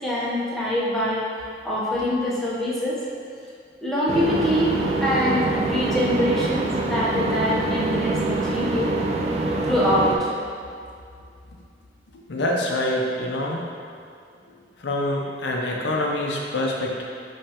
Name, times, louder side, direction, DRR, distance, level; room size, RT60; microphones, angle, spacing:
voice 1, 0.0-1.3 1.6-3.0 3.8-4.7 5.0-8.9 9.6-10.3, equal, ahead, -8 dB, 0.8 m, -24 dB
sound 1, 4.1-10.2, right 2 dB, 35° right, 0.4 m, -25 dB
voice 2, 12.3-13.7 14.8-17.0, left 1 dB, 75° left, -1 dB, 0.6 m, -25 dB
5.2 x 3.2 x 2.9 m, 2.3 s
head